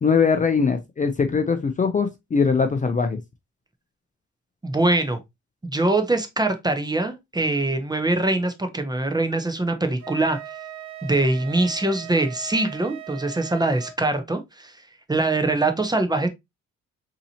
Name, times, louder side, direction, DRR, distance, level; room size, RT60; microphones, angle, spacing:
voice 1, 0.0-3.2, left 5 dB, 25° left, 0.5 m, -21 dB
voice 2, 4.6-5.2 5.6-10.4 11.0-14.7 15.1-16.3, right 2 dB, 15° right, 0.7 m, -23 dB
Wind instrument woodwind instrument, 10.0-14.0, right 11 dB, 70° right, 0.9 m, -39 dB
3.9 x 2.8 x 2.7 m
cardioid pair, 90°, 30 cm